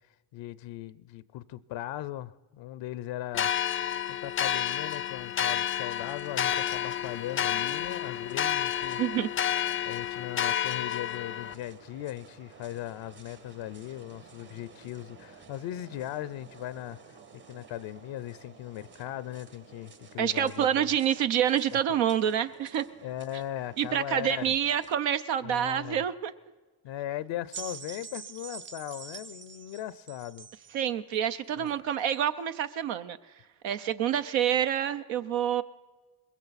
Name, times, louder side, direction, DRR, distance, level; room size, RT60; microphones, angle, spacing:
voice 1, 0.3-3.5 4.1-9.0 9.8-17.2 17.5-20.9 21.7-22.0 23.0-24.5 25.4-26.0 26.8-30.5 31.6-31.8, left 13 dB, 75° left, 18 dB, 0.6 m, -38 dB
sound 1, 3.3-11.5, left 10 dB, 30° left, 0.4 m, -30 dB
sound 2, 6.0-24.9, right 5 dB, 55° right, 2.0 m, -53 dB
voice 2, 9.0-9.3 20.2-22.8 23.8-26.3 30.7-33.2 33.6-35.6, right 9 dB, 80° right, 9 dB, 0.7 m, -27 dB
sound 3, 27.5-30.8 31.7-31.8, right 6 dB, 25° right, 0.5 m, -44 dB
20.5 x 16.5 x 4.1 m, 1.3 s
supercardioid pair, 55°, 45 cm